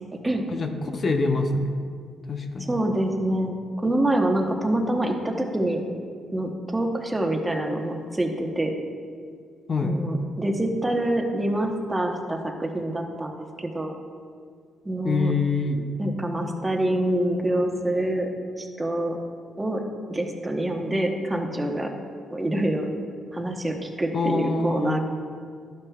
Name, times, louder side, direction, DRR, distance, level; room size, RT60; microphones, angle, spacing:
voice 1, 0.5-1.7 2.3-2.7 9.7-10.0 15.0-15.9 24.1-25.0, left 3 dB, 40° left, 5 dB, 0.7 m, -25 dB
voice 2, 2.7-5.8 6.3-8.7 9.8-13.9 14.8-15.3 16.0-18.3 18.6-19.2 19.6-19.8 20.1-21.9 22.3-22.9 23.3-25.0, right 1 dB, 15° right, 2 dB, 1.0 m, -26 dB
11.5 x 9.0 x 2.4 m, 2.1 s
cardioid pair, 90°, 0 cm